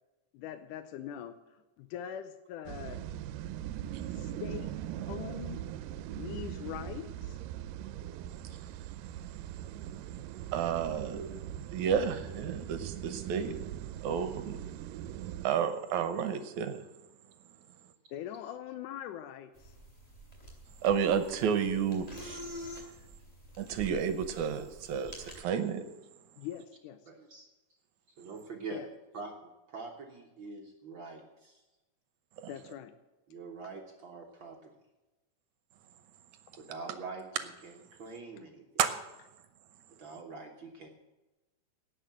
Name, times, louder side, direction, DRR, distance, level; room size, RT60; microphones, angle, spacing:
voice 1, 0.3-1.4 1.8-3.0 4.1-4.7 5.1-5.6 6.1-7.4 18.1-19.7 26.4-27.0 28.7-28.9 32.5-32.9, left 10 dB, 80° left, 9 dB, 2.1 m, -42 dB
sound 1, 2.7-15.5, right 11 dB, 85° right, 2.2 m, -41 dB
voice 2, 10.5-11.3 11.7-13.6 14.0-14.6 15.4-16.8 20.8-22.4 23.6-25.8 32.4-32.5 38.8-38.9, right 7 dB, 70° right, 10 dB, 2.1 m, -31 dB
sound 2, 19.6-25.4, equal, 10° left, 3.1 m, -47 dB
voice 3, 27.0-27.4 28.2-28.8 29.1-31.6 33.3-34.7 36.6-37.2 37.6-38.6 40.0-40.9, right 4 dB, 55° right, 1 dB, 1.4 m, -44 dB
17.5 x 6.6 x 7.6 m, 1.1 s
omnidirectional pair, 3.8 m